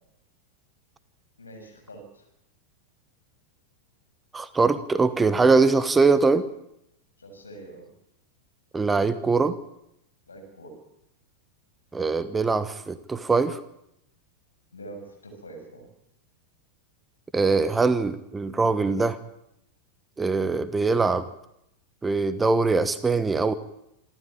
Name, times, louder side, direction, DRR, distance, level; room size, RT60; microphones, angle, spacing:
voice 1, 1.4-2.3 7.2-7.9 10.3-10.7 14.7-15.9, right 2 dB, 75° left, 4 dB, 7.1 m, -44 dB
voice 2, 4.3-6.5 8.7-9.6 11.9-13.6 17.3-19.2 20.2-21.3 22.0-23.5, right 4 dB, 15° right, 14 dB, 1.2 m, -22 dB
27.0 x 13.5 x 8.9 m, 0.81 s
figure-of-eight pair, 90°, 0 cm